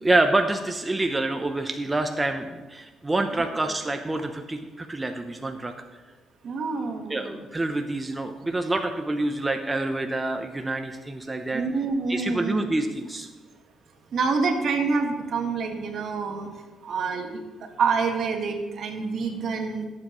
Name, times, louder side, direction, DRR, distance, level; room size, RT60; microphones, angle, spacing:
voice 1, 0.0-5.7 7.1-11.6 12.1-13.3, right 2 dB, 15° right, 5 dB, 0.7 m, -27 dB
voice 2, 6.4-7.4 11.5-12.7 14.1-19.9, right 4 dB, 65° right, 4 dB, 1.4 m, -27 dB
16.5 x 7.5 x 3.1 m, 1.3 s
cardioid pair, 90°, 0 cm